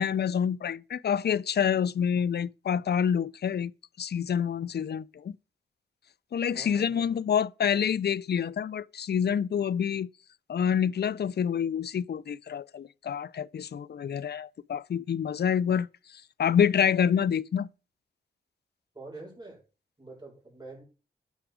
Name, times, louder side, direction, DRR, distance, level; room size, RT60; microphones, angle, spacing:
voice 1, 0.0-3.7 4.0-5.3 6.3-10.1 10.5-15.9 16.4-17.7, left 8 dB, 55° left, 0.5 m, -27 dB
voice 2, 6.5-7.2 18.9-19.6 20.0-20.8, right 2 dB, 20° right, 6.4 m, -46 dB
9.1 x 5.8 x 5.0 m
cardioid pair, 70°, 20 cm